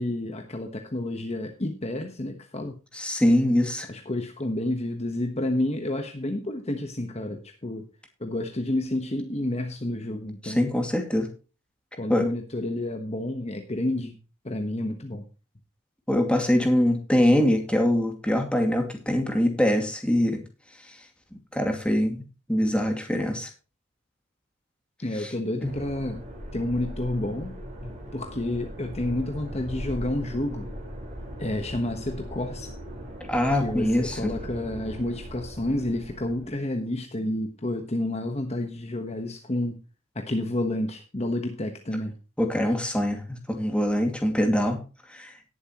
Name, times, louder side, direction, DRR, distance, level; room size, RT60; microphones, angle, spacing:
voice 1, 0.0-2.7 3.9-7.9 8.2-10.7 11.9-14.2 14.4-15.2 25.0-26.2 26.5-27.5 27.8-30.7 31.4-32.8 33.6-39.8 40.1-42.1, left 1 dB, 30° left, 4 dB, 1.3 m, -30 dB
voice 2, 2.9-3.9 10.4-11.3 12.1-12.3 16.1-20.4 21.5-22.2 22.5-23.5 25.2-25.3 25.6-25.7 33.3-34.3 42.4-44.8 45.1-45.3, left 1 dB, 5° left, 4 dB, 2.3 m, -23 dB
sound 1, 25.6-36.6, equal, 35° right, 4.7 m, -39 dB
18.0 x 7.8 x 3.0 m, 0.33 s
head